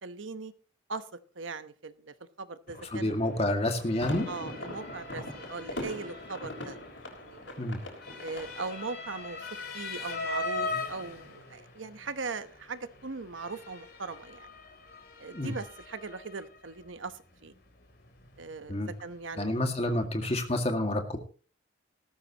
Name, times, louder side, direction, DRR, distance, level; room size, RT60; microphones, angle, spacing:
voice 1, 0.0-0.5 0.9-1.1 1.4-3.2 4.3-6.8 7.2-7.5 8.2-9.5 9.7-14.5 15.2-17.5 18.4-19.6 19.8-20.0, right 4 dB, 85° right, 11 dB, 1.1 m, -40 dB
Motor vehicle (road) / Siren, 2.7-20.1, left 3 dB, 50° left, 3.3 m, -42 dB
voice 2, 2.9-4.3 7.6-7.8 15.3-15.6 18.7-18.9 19.4-21.2, left 1 dB, 30° left, 5 dB, 2.1 m, -29 dB
sound 1, 3.6-8.7, left 1 dB, 75° left, 5.7 m, -41 dB
18.0 x 14.0 x 3.0 m, 0.37 s
head